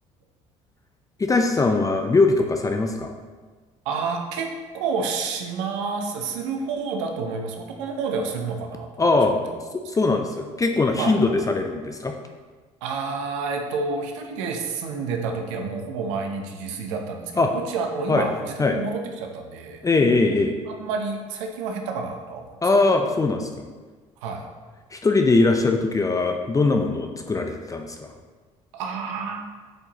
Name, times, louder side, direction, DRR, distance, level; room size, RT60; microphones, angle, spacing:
voice 1, 1.2-3.1 9.0-9.3 10.0-12.1 17.4-17.5 18.1-18.3 18.6-18.8 19.8-20.5 22.6-23.6 24.9-28.0, left 3 dB, 20° left, 4 dB, 0.6 m, -21 dB
voice 2, 3.8-9.6 10.9-11.2 12.8-20.1 20.7-22.6 24.2-24.4 28.7-29.5, right 4 dB, 80° right, 3 dB, 0.8 m, -29 dB
7.9 x 4.5 x 3.0 m, 1.4 s
hypercardioid pair, 70°, 15 cm